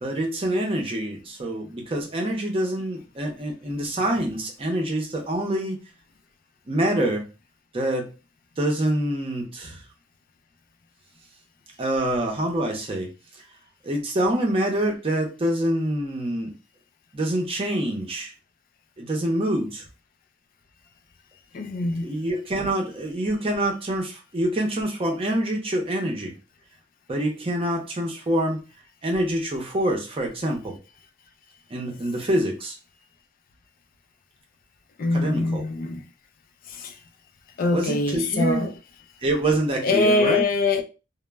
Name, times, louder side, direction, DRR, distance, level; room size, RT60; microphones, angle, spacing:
voice 1, 0.0-5.8 6.7-7.2 7.7-8.1 8.6-9.8 11.8-13.1 13.8-16.5 17.1-18.3 19.0-19.8 22.0-26.3 27.1-28.6 29.0-30.8 31.7-32.7 35.1-35.7 37.7-38.6 39.2-40.4, right 1 dB, 30° right, 0.5 m, -26 dB
voice 2, 21.5-22.1 35.0-36.0 36.7-36.9 37.6-38.8 39.8-40.8, left 2 dB, 50° left, 0.3 m, -23 dB
2.0 x 2.0 x 3.3 m
head